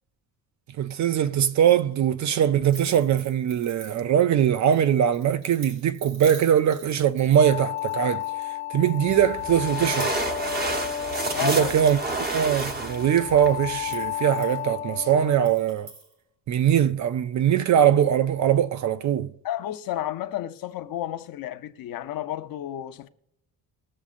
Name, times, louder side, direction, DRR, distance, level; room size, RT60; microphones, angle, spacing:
voice 1, 0.8-8.2 8.7-10.1 11.4-12.0 12.3-15.9 16.5-19.3, right 9 dB, 45° right, 0.4 m, -21 dB
sound 1, 2.7-4.3 4.7-8.5 8.9-9.5 9.8-10.4 10.7-11.3 11.6-15.0 15.4-16.1, right 3 dB, 85° right, 3.7 m, -47 dB
sound 2, 7.4-15.5, left 11 dB, 20° left, 0.3 m, -33 dB
sound 3, 9.1-14.1, right 2 dB, 25° right, 0.8 m, -30 dB
voice 2, 11.3-11.7 19.4-23.1, left 12 dB, 55° left, 0.7 m, -31 dB
21.0 x 7.1 x 2.5 m
cardioid pair, 155°, 41 cm